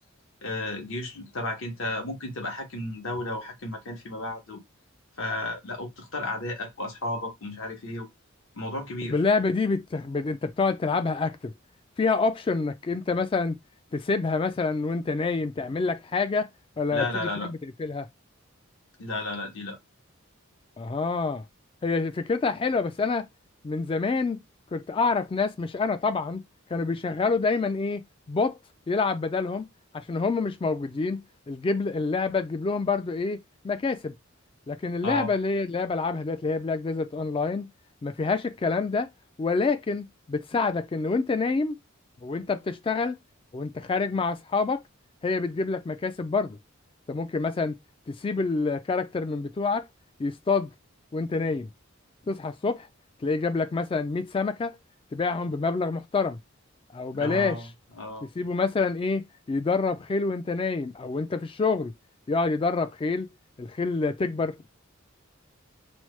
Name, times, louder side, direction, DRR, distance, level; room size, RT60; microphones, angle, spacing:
voice 1, 0.4-4.6 5.2-8.1 8.5-9.2 16.9-17.5 19.0-19.8 35.0-35.3 57.1-57.7 58.0-58.3, left 2 dB, 70° left, 1.0 m, -33 dB
voice 2, 9.1-11.5 12.0-13.6 13.9-16.5 16.8-18.1 20.8-21.4 21.8-23.2 23.6-24.4 24.7-26.4 26.7-28.6 28.9-29.7 29.9-33.4 33.6-34.1 34.7-37.7 38.0-39.1 39.4-41.8 42.2-43.2 43.5-44.8 45.2-46.6 47.1-47.7 48.1-49.9 50.2-50.7 51.1-51.7 52.3-52.9 53.2-54.8 55.1-56.4 56.9-57.6 58.4-61.9 62.3-63.3 63.6-64.6, left 4 dB, 25° left, 0.3 m, -27 dB
3.1 x 2.1 x 3.1 m
head